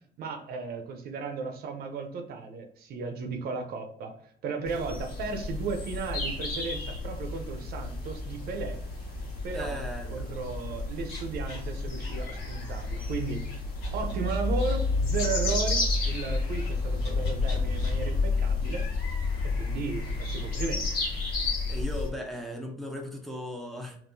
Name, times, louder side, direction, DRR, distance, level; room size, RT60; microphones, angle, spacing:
voice 1, 0.2-8.8 9.4-9.8 10.1-13.5 13.9-18.9 19.4-20.9, right 4 dB, 65° right, 6 dB, 0.6 m, -35 dB
sound 1, 4.7-22.1, left 3 dB, 60° left, 1.4 m, -31 dB
voice 2, 9.5-10.4 21.7-24.0, equal, ahead, 0 dB, 0.6 m, -37 dB
sound 2, 11.1-11.6 12.0-14.9 15.1-15.6 16.0-16.7 17.0-21.8, left 3 dB, 90° left, 1.3 m, -47 dB
3.6 x 2.5 x 2.6 m, 0.64 s
cardioid pair, 110°, 17 cm